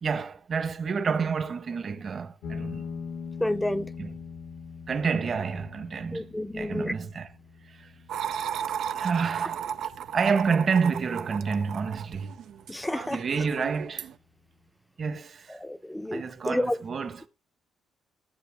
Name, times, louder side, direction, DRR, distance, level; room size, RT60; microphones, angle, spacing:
voice 1, 0.0-2.9 4.0-4.1 4.9-6.3 6.5-7.3 7.7-7.9 8.9-9.7 10.1-12.3 13.1-14.1 15.0-15.6 16.1-17.3, right 5 dB, 45° right, 1.2 m, -29 dB
sound 1, 2.4-11.4, left 5 dB, 85° left, 1.8 m, -42 dB
voice 2, 3.4-3.9 6.1-7.0 12.7-13.2 15.5-16.8, left 1 dB, 5° left, 0.7 m, -30 dB
sound 2, 8.1-14.1, right 9 dB, 75° right, 0.6 m, -35 dB
14.5 x 6.8 x 3.6 m
cardioid pair, 90°, 0 cm